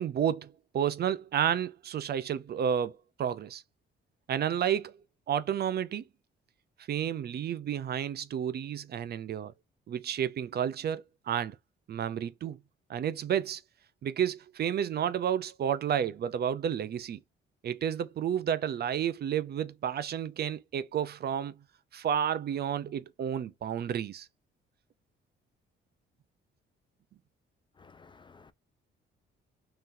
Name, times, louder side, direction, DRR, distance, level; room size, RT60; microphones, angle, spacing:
voice 1, 0.0-3.6 4.3-5.0 5.3-6.0 6.9-9.5 9.9-11.6 11.9-12.6 12.9-13.6 14.0-17.2 17.6-21.5 21.9-24.3, right 9 dB, 55° right, 0.6 m, -31 dB
voice 2, 27.8-28.5, left 4 dB, 25° left, 0.4 m, -55 dB
3.8 x 3.1 x 2.6 m
cardioid pair, 90°, 20 cm